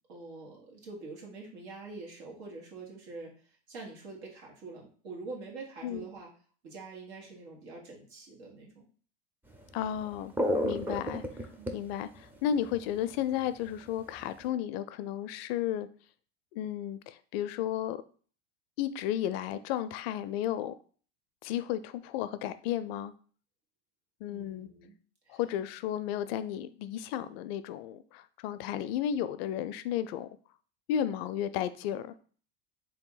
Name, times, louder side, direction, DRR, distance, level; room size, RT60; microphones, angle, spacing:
voice 1, 0.1-3.3 3.7-6.3 6.6-8.8 11.6-11.8 24.3-25.0 25.3-25.4, right 3 dB, 85° right, -1 dB, 1.7 m, -45 dB
sound 1, 9.6-9.7 10.0-13.4 13.7-14.5, equal, 5° right, 0.5 m, -31 dB
voice 2, 9.7-10.3 10.6-11.2 11.7-15.9 16.5-18.0 18.8-20.7 21.4-23.1 24.2-24.7 25.3-30.3 30.9-32.1, left 10 dB, 70° left, 13 dB, 0.5 m, -33 dB
3.5 x 2.8 x 3.8 m, 0.42 s
supercardioid pair, 105°, 32 cm